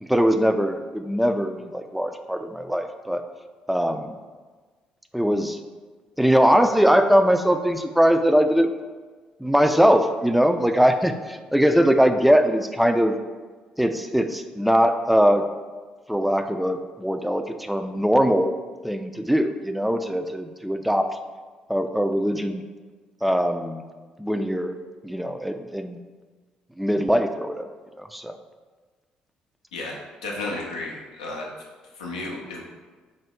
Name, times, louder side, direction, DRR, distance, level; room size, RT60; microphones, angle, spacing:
voice 1, 0.0-3.2 3.7-4.2 5.1-5.6 6.2-8.7 9.4-13.2 13.8-15.4 16.1-18.5 18.8-21.1 21.7-22.6 23.2-23.8 24.2-24.7 25.0-26.0 26.8-27.7 28.0-28.4, equal, ahead, 7 dB, 0.3 m, -21 dB
voice 2, 30.2-31.5 31.9-32.6, left 2 dB, 90° left, -1 dB, 0.5 m, -32 dB
3.9 x 2.0 x 3.6 m, 1.4 s
hypercardioid pair, 50°, 3 cm